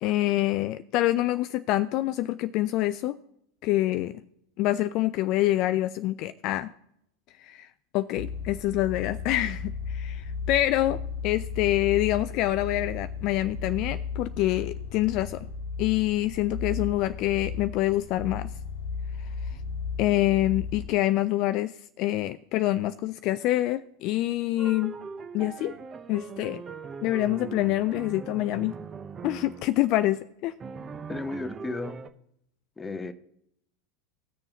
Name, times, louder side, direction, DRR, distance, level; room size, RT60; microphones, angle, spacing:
voice 1, 0.0-3.2 3.6-4.1 4.6-6.7 7.4-7.7 7.9-15.4 15.8-18.5 20.0-24.9 25.3-25.7 26.1-26.6 27.0-28.7 29.2-30.5, left 15 dB, 50° left, 0.3 m, -26 dB
sound 1, 8.2-20.9, left 5 dB, 85° left, 1.3 m, -35 dB
sound 2, 24.6-29.8 30.6-32.1, right 5 dB, 25° right, 0.7 m, -40 dB
voice 2, 31.1-32.0 32.8-33.1, left 3 dB, 15° left, 0.8 m, -34 dB
18.0 x 6.7 x 2.8 m
figure-of-eight pair, 85°, 0 cm